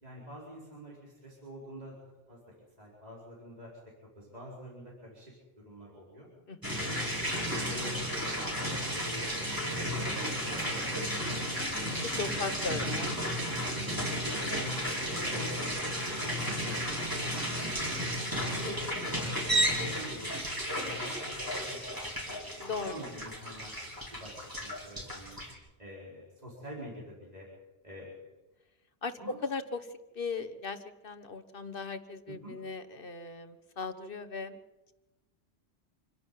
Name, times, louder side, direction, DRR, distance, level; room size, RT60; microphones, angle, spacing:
voice 1, 0.0-1.9 2.3-2.4 2.8-3.7 4.1-5.3 5.6-6.3 6.8-7.0 7.3-8.4 8.7-9.3 9.7-12.1 12.4-13.2 13.8-16.8 17.2-17.7 18.6-19.3 19.9-22.0 22.3-23.7 24.2-25.4 25.8-27.5 27.8-28.1 29.2-29.4 32.3-32.6, equal, 35° right, -4 dB, 4.8 m, -47 dB
sound 1, 6.6-25.5, equal, 20° right, 5.2 m, -33 dB
voice 2, 12.0-13.1 13.5-13.6 22.6-23.0 29.0-29.1 29.4-29.8 30.2-30.8 31.0-34.6, left 4 dB, 55° left, 11 dB, 1.3 m, -37 dB
27.0 x 11.5 x 9.3 m, 1.1 s
omnidirectional pair, 1.1 m